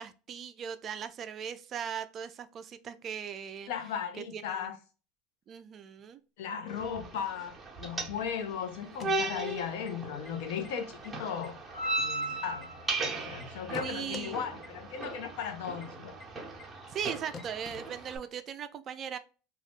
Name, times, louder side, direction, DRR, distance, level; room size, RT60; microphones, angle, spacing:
voice 1, 0.0-3.7 4.3-4.7 5.5-6.2 13.8-14.4 16.9-19.2, right 8 dB, 35° right, 0.3 m, -39 dB
voice 2, 3.7-4.8 6.4-11.5 12.0-12.7 13.2-16.1, left 7 dB, 75° left, 0.6 m, -36 dB
sound 1, 6.7-18.2, right 2 dB, 15° right, 0.9 m, -37 dB
sound 2, 8.8-9.9 10.2-10.3 10.6-11.1 11.4-13.0 13.4-14.3 14.6-14.7 15.0-15.1 15.4-15.5 15.8-15.9 16.2-16.3 16.6-16.7 17.0-17.1 17.3-18.4, left 5 dB, 30° left, 0.4 m, -47 dB
2.6 x 2.3 x 3.4 m
supercardioid pair, 120°, 0 cm